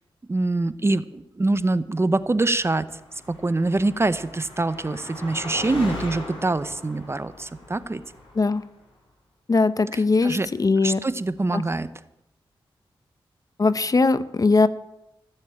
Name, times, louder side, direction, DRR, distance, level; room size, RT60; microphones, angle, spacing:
voice 1, 0.3-2.9 3.3-8.0 9.9-10.5 10.8-11.9, right 2 dB, 25° right, 14 dB, 0.8 m, -24 dB
Car passing by, 2.7-8.6, left 2 dB, 65° left, 5.5 m, -39 dB
voice 2, 9.5-11.0 11.5-11.6 13.6-14.7, left 3 dB, 40° left, 14 dB, 0.7 m, -20 dB
16.0 x 6.9 x 8.7 m, 0.90 s
cardioid pair, 60°, 10 cm